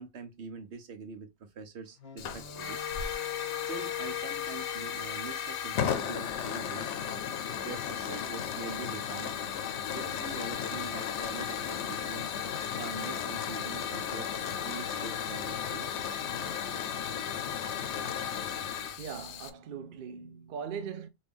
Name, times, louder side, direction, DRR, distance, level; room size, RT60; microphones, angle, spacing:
voice 1, 0.0-2.8 3.7-6.9 7.6-9.3 9.9-12.3 12.8-16.0, right 4 dB, 80° right, 1.0 m, -44 dB
Wind instrument woodwind instrument, 2.0-6.2, left 13 dB, 65° left, 1.1 m, -41 dB
Hiss / Fire, 2.2-19.5, left 8 dB, 90° left, 0.9 m, -35 dB
voice 2, 19.0-21.1, right 7 dB, 55° right, 0.7 m, -40 dB
3.1 x 2.6 x 3.4 m
omnidirectional pair, 1.1 m